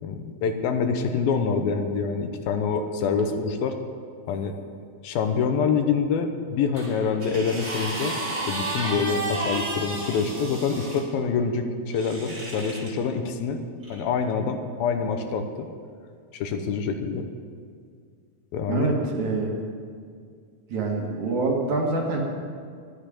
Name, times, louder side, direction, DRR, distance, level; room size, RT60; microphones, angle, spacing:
voice 1, 0.0-3.8 4.3-4.5 5.0-8.2 8.5-13.6 13.9-15.7 16.3-17.3 18.5-18.9, left 5 dB, 80° left, 6 dB, 2.7 m, -26 dB
sound 1, 6.7-11.0 11.9-12.9 13.8-14.0, right 2 dB, 20° right, 2.8 m, -32 dB
voice 2, 18.7-19.5 20.7-22.2, right 3 dB, 60° right, 0 dB, 2.9 m, -25 dB
12.5 x 10.0 x 8.6 m, 2.1 s
omnidirectional pair, 4.3 m